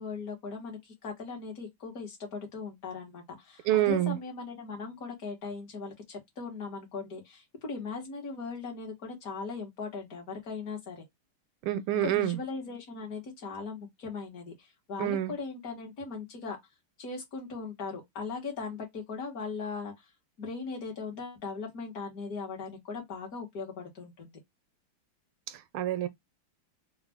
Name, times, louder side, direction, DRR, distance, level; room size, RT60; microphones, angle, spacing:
voice 1, 0.0-11.0 12.0-16.6 17.0-20.0 20.4-24.4, left 4 dB, 45° left, 1.7 m, -39 dB
voice 2, 3.6-4.2 11.6-12.4 15.0-15.3 25.5-26.1, right 12 dB, 75° right, 1.3 m, -27 dB
4.0 x 2.5 x 3.4 m
omnidirectional pair, 2.4 m